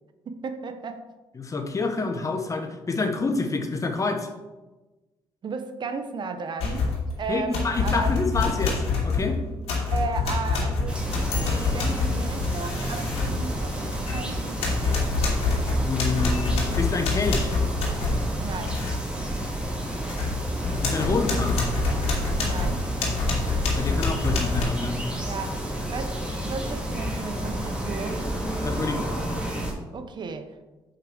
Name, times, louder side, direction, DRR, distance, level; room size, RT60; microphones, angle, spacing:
voice 1, 0.3-1.1 5.4-8.1 9.9-15.0 18.4-18.8 22.4-22.9 25.2-28.3 29.9-30.6, right 4 dB, 50° right, 9 dB, 0.8 m, -35 dB
voice 2, 1.3-4.3 7.3-9.4 15.8-17.5 20.8-21.6 23.7-25.0 28.6-29.0, left 3 dB, 30° left, 5 dB, 1.2 m, -27 dB
sound 1, 6.6-7.1 7.5-14.3 14.6-19.0 19.4-19.5 19.9-24.6, left 3 dB, 80° left, 2.7 m, -26 dB
sound 2, 10.9-29.7, right 1 dB, 10° right, 2.7 m, -31 dB
6.6 x 5.0 x 6.2 m, 1.1 s
cardioid pair, 85°, 10 cm